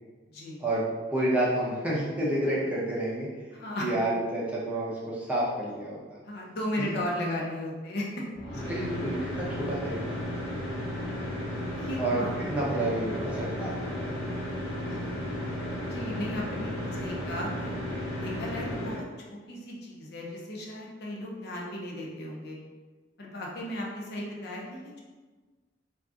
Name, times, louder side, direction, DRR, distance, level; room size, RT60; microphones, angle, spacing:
voice 1, 0.6-3.3 3.8-6.2 7.2-7.4 8.7-10.5 12.0-14.2 14.8-15.0, right 1 dB, 5° right, -6 dB, 0.5 m, -30 dB
voice 2, 3.5-3.9 6.2-8.7 11.7-12.3 15.0-15.2 15.9-17.7 18.2-22.6 23.2-25.0, left 1 dB, 60° left, -2 dB, 0.6 m, -36 dB
sound 1, 8.3-19.0, left 1 dB, 90° left, 1.0 m, -34 dB
2.5 x 2.3 x 3.6 m, 1.3 s
head